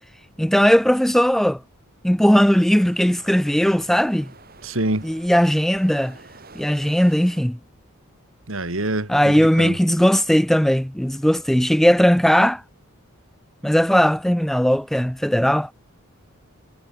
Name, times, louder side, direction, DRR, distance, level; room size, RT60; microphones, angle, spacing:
voice 1, 0.4-1.6 2.0-4.3 5.0-6.2 6.6-7.6 9.1-12.6 13.6-15.7, equal, ahead, 0.4 m, -18 dB
sound 1, 2.3-7.4, right 3 dB, 45° right, 5.9 m, -47 dB
voice 2, 4.6-5.1 8.5-9.8, right 1 dB, 65° right, 2.8 m, -26 dB
head